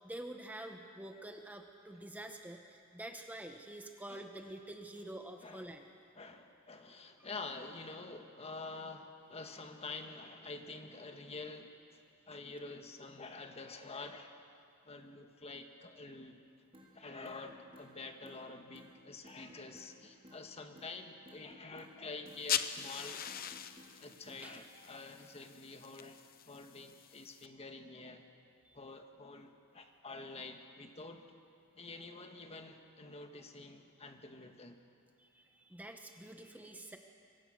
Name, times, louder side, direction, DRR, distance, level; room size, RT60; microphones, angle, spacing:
voice 1, 0.0-5.9 24.4-24.7 28.6-28.8 35.2-37.0, right 1 dB, 10° right, 4 dB, 1.1 m, -47 dB
voice 2, 5.4-5.7 6.1-14.4 14.8-16.4 16.9-23.2 24.0-28.2 28.7-31.2 31.8-34.8, left 3 dB, 30° left, 5 dB, 1.6 m, -48 dB
sound 1, 16.7-16.9 17.2-17.9 18.2-18.4 18.7-18.9 19.2-19.9 20.2-20.4 20.8-20.9 21.3-22.0 22.3-22.5 22.8-23.0 23.3-23.9 24.3-24.5, equal, 25° right, 3.7 m, -57 dB
sound 2, 22.3-27.5, left 9 dB, 45° left, 0.8 m, -41 dB
26.0 x 23.5 x 6.6 m, 2.4 s
head